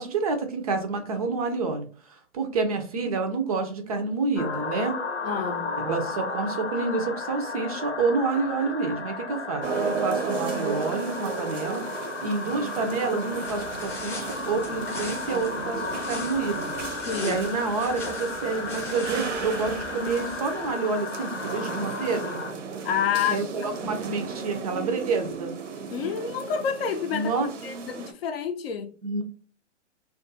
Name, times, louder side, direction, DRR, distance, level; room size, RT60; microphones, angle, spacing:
voice 1, 0.0-5.0 5.8-11.8 12.2-16.7 17.2-22.4 23.3-25.5 27.1-27.5 29.0-29.2, right 4 dB, 35° right, 0.4 m, -28 dB
sound 1, 4.4-22.5, left 4 dB, 85° left, 0.9 m, -34 dB
voice 2, 5.2-5.7 17.0-17.4 22.8-23.4 25.9-27.3 27.6-28.9, left 8 dB, 55° left, 0.5 m, -28 dB
sound 2, 9.6-28.1, right 5 dB, 80° right, 0.6 m, -34 dB
sound 3, 13.4-20.6, left 1 dB, 5° left, 0.8 m, -41 dB
2.4 x 2.3 x 2.6 m
figure-of-eight pair, 120°, 36 cm